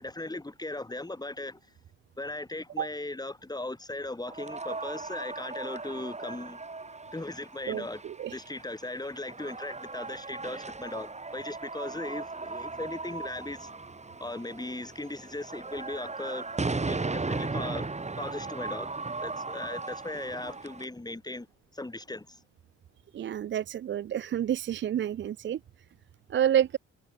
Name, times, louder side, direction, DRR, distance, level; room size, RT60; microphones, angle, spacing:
voice 1, 0.0-1.6 2.2-6.6 7.1-8.0 8.3-13.7 14.2-16.4 16.7-17.9 18.2-18.9 19.2-21.5 21.7-22.4, left 2 dB, 15° left, 6.2 m, -38 dB
sound 1, 4.3-20.8, right 3 dB, 20° right, 4.5 m, -37 dB
voice 2, 7.7-8.4 23.1-25.6 26.3-26.8, right 10 dB, 40° right, 0.4 m, -29 dB
cardioid pair, 90°, 30 cm